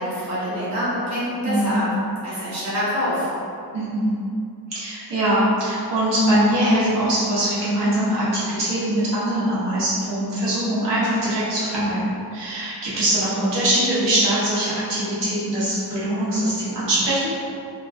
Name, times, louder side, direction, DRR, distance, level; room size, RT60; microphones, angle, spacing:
voice 1, 0.0-1.8 2.2-3.3, equal, 40° right, -11 dB, 1.0 m, -25 dB
voice 2, 1.4-1.9 3.7-4.2 4.7-12.0 12.3-17.4, right 1 dB, 85° right, -10 dB, 0.9 m, -22 dB
2.8 x 2.5 x 2.4 m, 2.4 s
wide cardioid pair, 175°, 41 cm